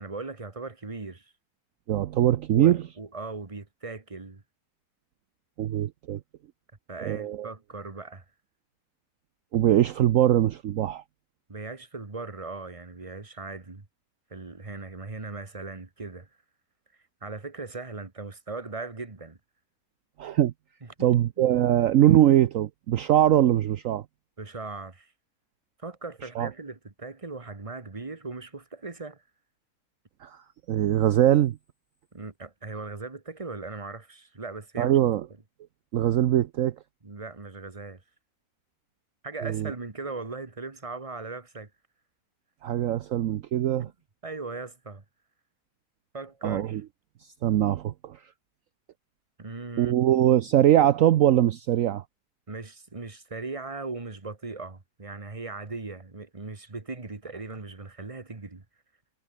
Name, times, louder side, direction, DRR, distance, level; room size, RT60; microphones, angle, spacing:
voice 1, 0.0-1.3 2.5-4.4 6.9-8.2 11.5-13.9 14.3-16.3 17.2-19.4 20.8-21.4 24.4-25.1 25.8-29.2 32.1-35.0 37.0-38.0 39.2-41.7 43.8-43.9 44.2-45.0 46.1-46.8 49.4-49.9 50.3-50.4 52.5-58.6, right 3 dB, 20° right, 1.6 m, -38 dB
voice 2, 1.9-2.8 5.6-6.2 7.0-7.5 9.5-11.0 20.2-20.5 21.0-24.0 26.4-26.5 30.2-30.4 30.7-31.6 34.8-35.3 35.9-36.7 39.4-39.7 42.6-43.9 46.4-46.8 47.4-48.2 49.8-52.0, right 12 dB, 65° right, 1.0 m, -22 dB
omnidirectional pair, 1.7 m